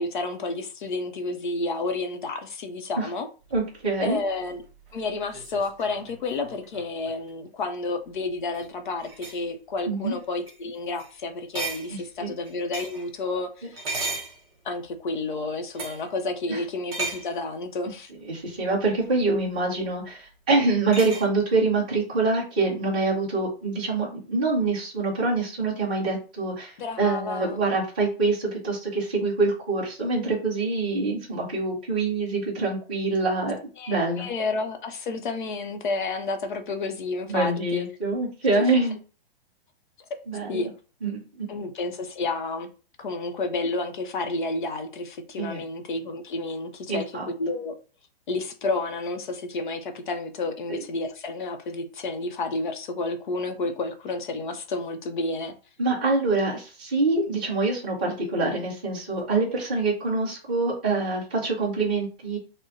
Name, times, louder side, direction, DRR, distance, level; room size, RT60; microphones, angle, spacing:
voice 1, 0.0-3.3 4.0-4.6 4.9-13.8 14.6-18.1 26.8-27.6 33.8-37.9 38.6-38.7 40.5-40.7 41.5-42.7 43.0-47.0 47.4-47.7 48.3-55.5, left 3 dB, 50° left, 0.7 m, -30 dB
voice 2, 3.5-4.2 9.9-10.1 11.9-12.3 16.5-16.6 18.3-33.6 33.9-34.3 37.3-39.0 40.3-40.7 41.0-41.5 45.4-45.6 46.9-47.3 50.7-50.8 55.8-62.4, right 3 dB, 10° right, 0.4 m, -25 dB
sound 1, 3.5-7.3 8.4-8.7 9.0-9.5 10.0-10.2 10.5-10.6 10.9-11.1 11.5-13.1 13.7-14.9 15.7-16.1 16.9-17.4 19.0-19.1 20.9-21.3, right 3 dB, 35° right, 1.2 m, -36 dB
3.7 x 2.1 x 4.0 m
hypercardioid pair, 180°, 31 cm